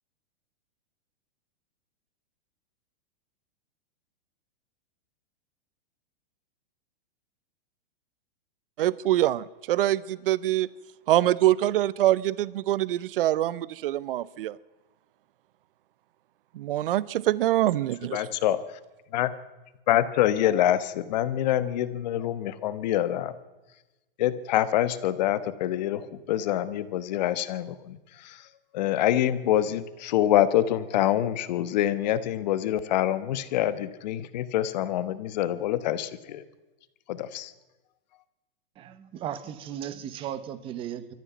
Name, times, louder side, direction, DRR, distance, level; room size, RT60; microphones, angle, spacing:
voice 1, 8.8-10.7 11.1-14.6 16.5-18.2, right 14 dB, 65° right, 20 dB, 0.7 m, -24 dB
voice 2, 18.1-18.6 19.1-19.3 19.9-23.3 24.2-28.4 28.7-36.4 37.1-37.5, left 12 dB, 45° left, 14 dB, 1.2 m, -26 dB
voice 3, 38.8-41.1, right 10 dB, 20° right, 14 dB, 1.0 m, -36 dB
23.0 x 14.0 x 9.3 m, 1.1 s
supercardioid pair, 165°, 29 cm